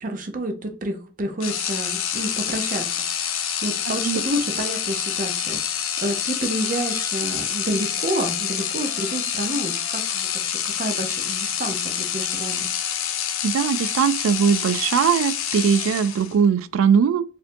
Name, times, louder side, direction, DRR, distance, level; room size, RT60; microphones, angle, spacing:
voice 1, 0.0-12.7, right 1 dB, 40° right, 0.6 m, -29 dB
sound 1, 1.4-16.4, left 9 dB, 80° left, 0.5 m, -27 dB
voice 2, 13.4-17.2, right 7 dB, 90° right, 0.3 m, -20 dB
4.4 x 2.6 x 2.6 m
head